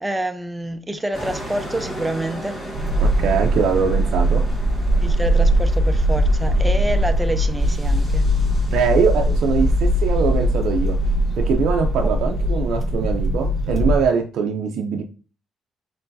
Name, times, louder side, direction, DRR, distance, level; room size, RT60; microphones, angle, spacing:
voice 1, 0.0-2.6 5.0-8.3 12.0-12.1, right 1 dB, 10° right, 0.5 m, -27 dB
sound 1, 1.1-14.0, equal, 40° left, 2.3 m, -38 dB
sound 2, 2.7-14.0, equal, 45° right, 1.0 m, -20 dB
voice 2, 3.0-4.4 8.7-11.0 11.4-15.0, right 6 dB, 75° right, 0.4 m, -22 dB
4.4 x 3.9 x 2.6 m
cardioid pair, 90°, 0 cm